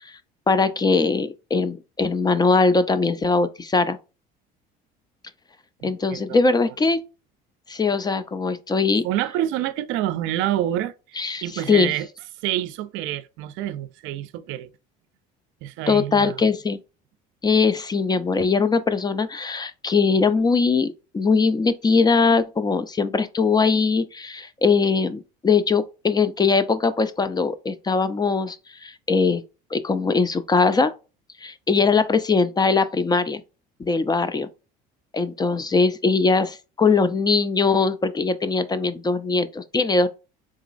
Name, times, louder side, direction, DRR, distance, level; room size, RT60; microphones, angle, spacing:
voice 1, 0.5-4.0 5.8-7.0 7.7-9.1 11.2-11.9 15.9-16.8 17.4-29.4 29.7-30.9 31.4-33.4 33.8-34.5 35.1-40.1, left 4 dB, 20° left, 0.4 m, -21 dB
voice 2, 5.8-6.7 9.0-12.1 12.4-14.7 15.6-16.5, right 12 dB, 70° right, 0.4 m, -28 dB
3.8 x 2.9 x 2.5 m
supercardioid pair, 90°, 21 cm